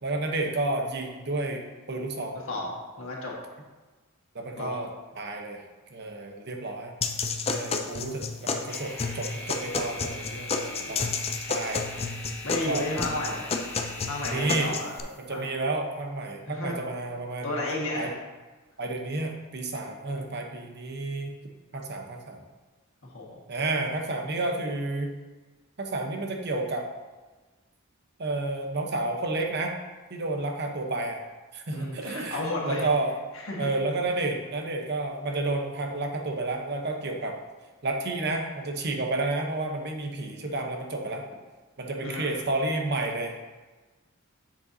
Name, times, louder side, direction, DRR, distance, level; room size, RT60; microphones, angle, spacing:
voice 1, 0.0-2.4 4.3-4.9 5.2-5.6 5.9-6.9 7.2-11.1 11.5-11.8 12.7-12.9 14.3-14.7 15.2-17.5 18.0-18.1 18.8-21.3 21.7-22.4 23.5-25.1 25.8-26.8 28.2-29.8 30.1-31.2 31.5-33.1 33.6-37.4 37.8-41.2 41.8-43.3, right 2 dB, 50° right, 3 dB, 0.9 m, -31 dB
voice 2, 3.0-3.3 4.6-4.8 7.8-7.9 10.8-11.0 12.4-13.4 14.1-14.9 15.3-15.4 16.5-16.8 17.4-18.1 23.1-23.3 31.7-32.9 33.3-33.7 42.0-42.3, left 2 dB, 70° left, -3 dB, 1.6 m, -32 dB
sound 1, 7.0-15.0, left 4 dB, 30° left, 0.5 m, -31 dB
sound 2, 8.7-15.4, left 2 dB, 10° left, 2.3 m, -41 dB
7.5 x 6.8 x 2.7 m, 1.3 s
head